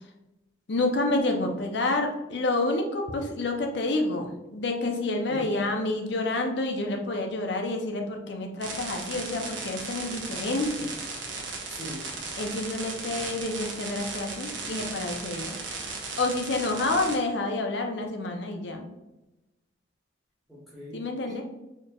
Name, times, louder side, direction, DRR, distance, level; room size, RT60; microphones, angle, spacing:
voice 1, 0.7-10.9 12.4-15.6 16.2-18.9 20.9-21.4, left 2 dB, 60° left, 3 dB, 0.6 m, -28 dB
sound 1, 8.6-17.2, right 4 dB, 70° right, 0.9 m, -36 dB
voice 2, 11.7-12.0 20.5-21.4, equal, ahead, -7 dB, 1.0 m, -41 dB
4.3 x 3.0 x 2.3 m, 0.99 s
head